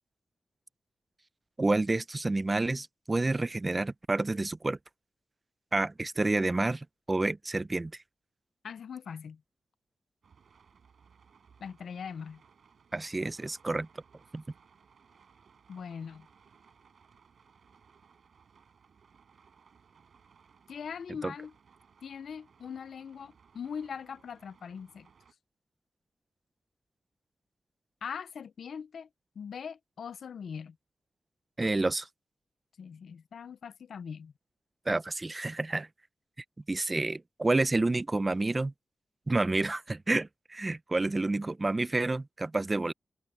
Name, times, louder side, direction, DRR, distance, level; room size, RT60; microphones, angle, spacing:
voice 1, 1.6-4.8 5.7-7.9 12.9-13.9 14.3-14.4 21.2-21.3 31.6-32.1 34.9-35.9 36.7-38.7 39.3-42.9, right 2 dB, 25° right, 0.5 m, -29 dB
voice 2, 8.6-9.4 11.6-12.4 15.7-16.3 20.7-21.5 22.0-25.1 28.0-29.1 29.4-30.8 32.8-34.3, left 7 dB, 85° left, 0.6 m, -41 dB
sound 1, 10.2-25.3, right 6 dB, 70° right, 7.2 m, -62 dB
wide cardioid pair, 130°, 0 cm